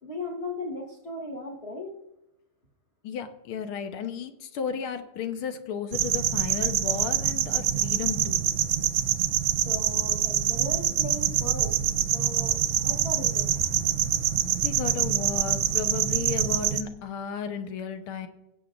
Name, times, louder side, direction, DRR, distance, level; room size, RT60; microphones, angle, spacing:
voice 1, 0.0-1.9 9.5-13.5, left 1 dB, 35° left, -2 dB, 1.3 m, -37 dB
voice 2, 3.0-8.4 14.6-18.3, left 7 dB, 75° left, 7 dB, 1.8 m, -34 dB
sound 1, 5.9-16.8, right 10 dB, 90° right, 1.6 m, -25 dB
17.5 x 8.2 x 2.5 m, 0.91 s
omnidirectional pair, 2.4 m